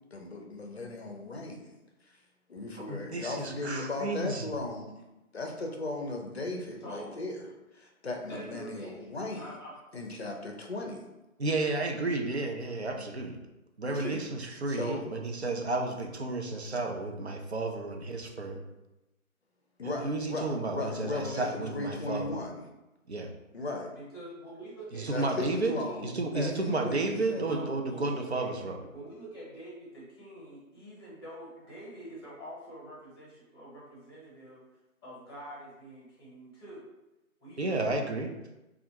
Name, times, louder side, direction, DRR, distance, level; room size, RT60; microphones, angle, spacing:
voice 1, 0.1-1.7 2.5-5.0 5.3-7.5 7.7-9.4 9.9-11.0 13.8-14.2 14.7-15.1 19.8-22.6 23.5-23.9 25.1-27.6, left 2 dB, 50° left, 2 dB, 0.6 m, -37 dB
voice 2, 2.9-4.5 11.4-13.4 13.8-18.6 19.8-22.3 23.1-23.3 24.9-25.7 26.0-28.8 37.6-38.3, right 2 dB, 50° right, 3 dB, 0.4 m, -32 dB
voice 3, 6.8-7.3 8.2-9.7 23.9-25.5 25.8-26.3 27.4-28.6 28.9-34.8 35.0-36.8 37.4-38.1, right 1 dB, 20° left, -6 dB, 0.9 m, -46 dB
3.2 x 2.4 x 2.8 m, 0.98 s
figure-of-eight pair, 150°, 42 cm